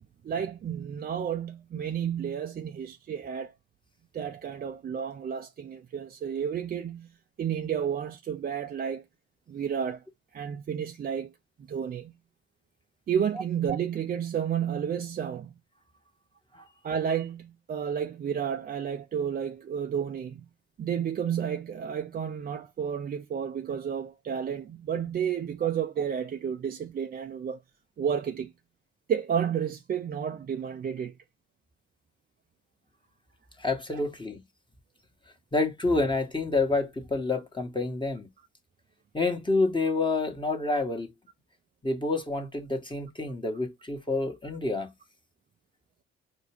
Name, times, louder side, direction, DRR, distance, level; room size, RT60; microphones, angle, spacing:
voice 1, 0.2-3.5 4.1-9.0 9.5-10.0 10.3-11.3 11.7-12.1 13.1-15.5 16.8-20.5 20.8-27.6 28.0-28.5 29.1-31.1 33.9-34.0, right 8 dB, 30° right, 0.4 m, -31 dB
voice 2, 33.6-34.4 35.5-38.3 39.1-41.1 41.8-44.9, left 3 dB, 15° left, 1.1 m, -28 dB
4.5 x 2.2 x 3.3 m
hypercardioid pair, 50°, 32 cm